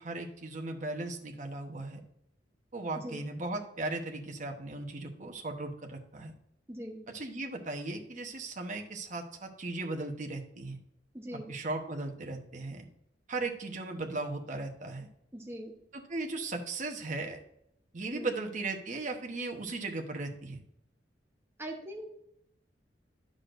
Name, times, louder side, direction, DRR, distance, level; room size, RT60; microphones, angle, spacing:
voice 1, 0.0-2.0 2.7-6.3 7.1-10.8 11.3-12.9 13.3-15.1 15.9-17.4 17.9-20.6, right 2 dB, 45° right, 3 dB, 1.0 m, -37 dB
voice 2, 6.7-7.1 11.1-11.6 15.3-15.8 18.1-18.3 21.6-22.1, right 1 dB, 15° right, 1 dB, 1.0 m, -41 dB
9.8 x 6.3 x 2.5 m, 0.75 s
head